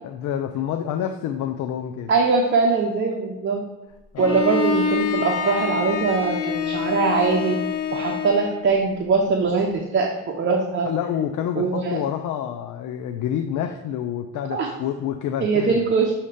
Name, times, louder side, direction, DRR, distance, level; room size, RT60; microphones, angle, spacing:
voice 1, 0.0-2.1 4.1-4.4 10.8-15.9, left 9 dB, 80° left, 6 dB, 0.5 m, -28 dB
voice 2, 2.1-3.6 4.2-7.6 7.9-10.9 11.6-12.0 14.5-14.7 15.4-16.1, right 4 dB, 40° right, 1 dB, 0.8 m, -22 dB
Bowed string instrument, 4.2-8.6, left 6 dB, 55° left, 0.9 m, -26 dB
7.1 x 2.9 x 5.0 m, 1.1 s
cardioid pair, 90°, 30 cm